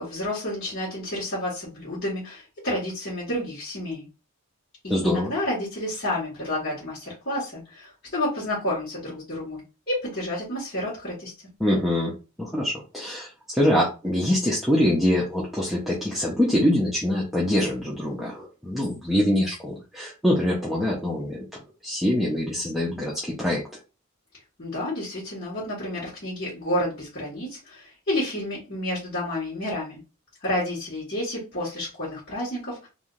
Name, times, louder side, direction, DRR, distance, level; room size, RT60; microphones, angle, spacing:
voice 1, 0.0-4.1 4.8-11.3 24.6-30.0 30.4-32.9, left 1 dB, 45° left, -11 dB, 1.6 m, -30 dB
voice 2, 4.9-5.3 11.6-12.1 12.4-21.4 21.8-23.6, left 1 dB, ahead, -6 dB, 0.6 m, -24 dB
3.3 x 2.7 x 2.5 m, 0.31 s
head